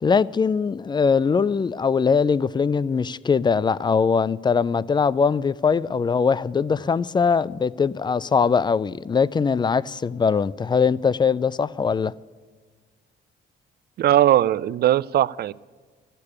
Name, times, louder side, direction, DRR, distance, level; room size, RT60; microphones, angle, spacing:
voice 1, 0.0-12.1, left 5 dB, 25° left, 0.3 m, -21 dB
voice 2, 14.0-15.5, right 12 dB, 55° right, 0.4 m, -19 dB
13.5 x 6.7 x 9.7 m
cardioid pair, 90°, 20 cm